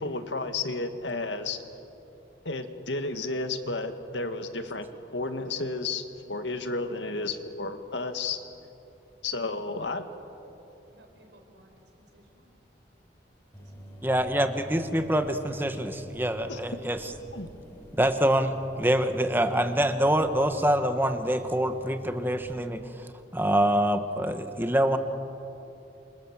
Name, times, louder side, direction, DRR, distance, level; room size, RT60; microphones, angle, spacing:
voice 1, 0.0-1.6 2.5-4.9 5.1-8.4 9.2-10.1 16.5-16.6 17.3-17.5, left 3 dB, 85° left, 7 dB, 1.9 m, -32 dB
voice 2, 10.9-12.5 13.6-14.2, right 1 dB, 75° right, 4 dB, 4.5 m, -59 dB
sound 1, 13.5-22.5, right 1 dB, 10° left, 5.3 m, -47 dB
voice 3, 14.0-17.1 18.0-23.1 23.3-25.0, right 1 dB, 10° right, 7 dB, 1.3 m, -25 dB
28.0 x 26.0 x 7.5 m, 2.9 s
head